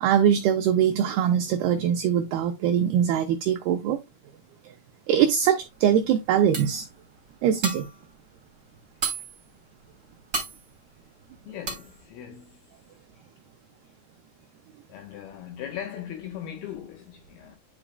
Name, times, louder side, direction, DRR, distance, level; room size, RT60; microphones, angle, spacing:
voice 1, 0.0-4.0 5.1-6.9 7.4-7.9, right 9 dB, 85° right, 2.2 m, -22 dB
sound 1, 5.7-5.8 6.3-6.4 6.5-6.9 7.4-8.1 8.4-8.5 8.7-9.4 9.8-9.9 10.3-10.6 11.0-11.3 11.7-11.9, right 4 dB, 25° right, 2.6 m, -32 dB
voice 2, 11.5-12.8 14.9-17.6, left 10 dB, 75° left, 2.4 m, -39 dB
9.9 x 5.1 x 2.2 m
omnidirectional pair, 5.3 m